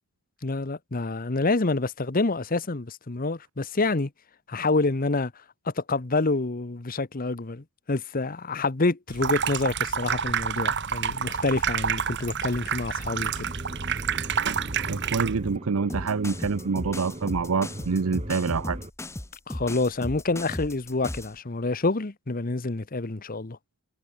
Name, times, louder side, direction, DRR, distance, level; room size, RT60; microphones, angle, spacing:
voice 1, 0.4-4.1 4.5-5.3 5.7-13.5 19.5-23.6, left 3 dB, 40° left, 1.0 m, -27 dB
Water tap faucet / Sink (filling or washing), 9.1-15.6, right 7 dB, 55° right, 1.7 m, -28 dB
sound 1, 13.0-18.9, right 1 dB, 30° right, 2.7 m, -40 dB
voice 2, 14.9-18.8, right 5 dB, 85° right, 0.6 m, -26 dB
sound 2, 15.9-21.3, left 1 dB, 15° left, 1.1 m, -36 dB
head